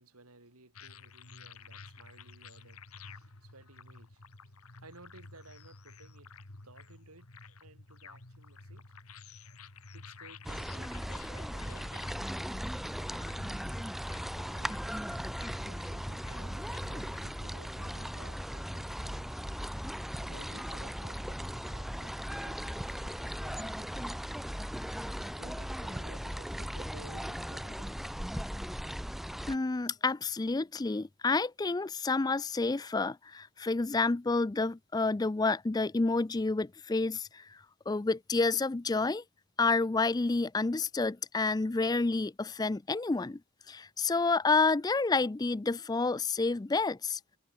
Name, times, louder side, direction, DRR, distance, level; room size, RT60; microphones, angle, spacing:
voice 1, 0.0-6.3 6.6-8.9 9.4-9.6 9.9-13.8 14.1-14.8 15.7-19.4 20.2-24.3 25.3-28.0, right 2 dB, 90° right, 4.7 m, -57 dB
sound 1, 0.7-17.5, left 4 dB, 85° left, 2.1 m, -52 dB
sound 2, 10.4-29.5, equal, ahead, 0.8 m, -38 dB
voice 2, 29.5-37.6 37.9-39.2 39.6-43.4 43.7-47.2, left 3 dB, 20° left, 0.3 m, -29 dB
head